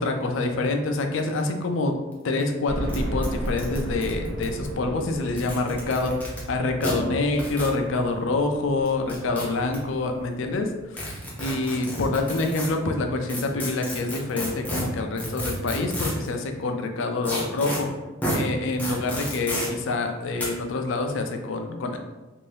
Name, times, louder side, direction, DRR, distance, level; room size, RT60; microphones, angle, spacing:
voice 1, 0.0-2.0 2.2-11.1 11.4-17.9 18.3-22.0, left 2 dB, 65° left, 5 dB, 0.4 m, -26 dB
sound 1, 2.1-2.2 2.4-2.5 2.9-3.0 3.2-4.7 5.3-6.4 6.8-6.9 7.4-7.7 8.9-9.8 10.9-12.7 13.3-16.3 17.2-17.8 18.2-18.4 18.8-19.7 20.4-20.5, equal, 10° left, 0.6 m, -31 dB
sound 2, 2.7-11.6 12.1-12.2 12.5-12.6 13.8-13.9 14.2-14.3, equal, 80° right, 0.6 m, -35 dB
2.7 x 2.6 x 3.3 m, 1.1 s
head